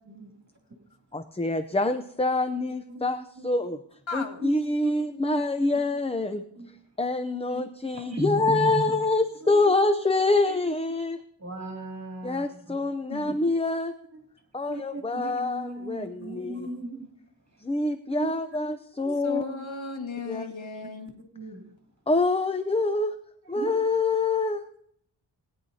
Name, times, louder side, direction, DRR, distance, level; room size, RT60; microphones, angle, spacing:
voice 1, 1.1-3.8 4.1-6.4 7.0-11.2 12.2-13.9 14.5-16.7 17.6-19.5 20.3-20.5 22.1-23.2 23.5-24.8, left 2 dB, 15° left, 9 dB, 0.5 m, -26 dB
voice 2, 2.7-3.1 3.4-3.5 4.4-4.5 4.8-5.4 6.6-6.7 7.5-7.6 7.9-9.0 9.4-9.7 10.5-10.6 11.4-12.8 14.1-14.2 14.7-17.1 17.5-17.6 18.2-18.3 18.7-19.1 21.3-21.6 23.4-23.7, right 1 dB, 35° right, 2 dB, 2.8 m, -36 dB
voice 3, 4.1-4.4 13.1-13.4 19.2-21.1, left 4 dB, 80° left, 4 dB, 1.8 m, -35 dB
20.0 x 10.0 x 2.8 m, 0.70 s
wide cardioid pair, 75°, 46 cm